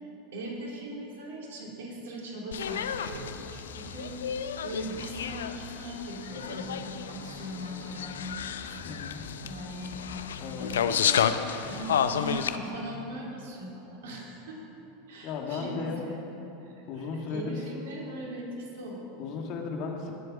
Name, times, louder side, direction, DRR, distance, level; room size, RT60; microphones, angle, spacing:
voice 1, 0.3-10.9 11.6-14.6 15.1-19.2, right 1 dB, 70° right, -2 dB, 3.1 m, -40 dB
sound 1, 2.5-12.6, left 8 dB, 75° left, 0.5 m, -31 dB
sound 2, 3.2-4.3 4.7-5.4 6.3-9.3 9.7-10.3 11.2-13.1, left 2 dB, 15° left, 3.6 m, -49 dB
voice 2, 8.8-9.2 10.4-10.7 15.2-16.1 16.9-17.6 19.2-20.1, left 5 dB, 50° left, 1 dB, 2.1 m, -35 dB
19.0 x 7.7 x 6.2 m, 3.0 s
hypercardioid pair, 85°, 0 cm